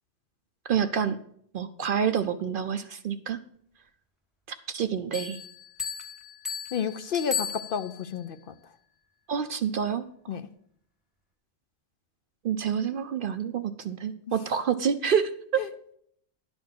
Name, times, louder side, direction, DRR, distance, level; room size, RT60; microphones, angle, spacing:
voice 1, 0.7-1.2 1.5-3.4 4.7-5.4 9.3-10.0 12.4-15.6, right 7 dB, 60° right, 10 dB, 0.6 m, -27 dB
Bell, 5.1-8.2, left 7 dB, ahead, 0.9 m, -35 dB
voice 2, 6.7-8.5 10.3-10.5 15.6-15.7, left 7 dB, 60° left, 11 dB, 0.6 m, -31 dB
11.0 x 4.4 x 7.5 m, 0.66 s
omnidirectional pair, 1.2 m